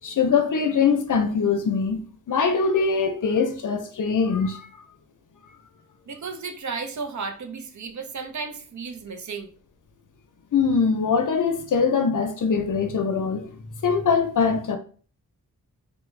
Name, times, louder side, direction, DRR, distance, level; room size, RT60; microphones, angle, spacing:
voice 1, 0.0-2.0 2.3-4.7 10.5-13.5 13.8-14.8, left 5 dB, 60° left, 0.6 m, -22 dB
voice 2, 6.1-9.5, right 4 dB, 55° right, 0.5 m, -34 dB
3.3 x 2.1 x 3.1 m
wide cardioid pair, 100°, 35 cm